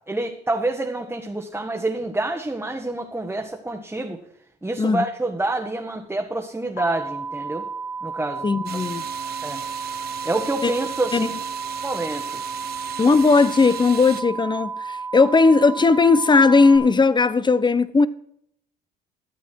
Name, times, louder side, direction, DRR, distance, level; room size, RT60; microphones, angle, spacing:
voice 1, 0.1-4.2 4.6-7.7 8.0-8.8 9.4-9.6 10.2-11.3 11.8-12.4, right 2 dB, 10° right, 1.5 m, -27 dB
sound 1, 6.8-16.8, right 4 dB, 80° left, 2.7 m, -32 dB
voice 2, 8.4-9.0 10.6-10.7 11.1-11.3 13.0-18.1, left 4 dB, 25° left, 0.8 m, -17 dB
sound 2, 8.7-14.2, right 10 dB, 55° right, 0.9 m, -37 dB
13.5 x 8.3 x 4.7 m
supercardioid pair, 65°, 20 cm